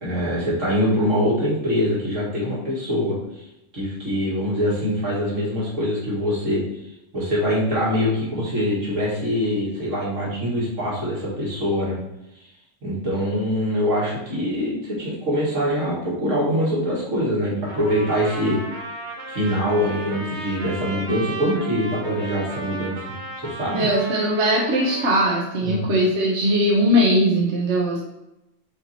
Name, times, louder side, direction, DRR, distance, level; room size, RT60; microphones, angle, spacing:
voice 1, 0.0-3.4 3.7-6.6 7.1-12.0 12.4-12.5 12.8-18.6 19.3-23.9 25.6-25.8, equal, 90° right, -6 dB, 2.7 m, -24 dB
Trumpet, 17.7-25.4, right 2 dB, 40° right, 1.2 m, -34 dB
voice 2, 23.7-28.1, equal, 65° right, -3 dB, 1.3 m, -20 dB
5.0 x 4.7 x 4.3 m, 0.90 s
omnidirectional pair, 1.3 m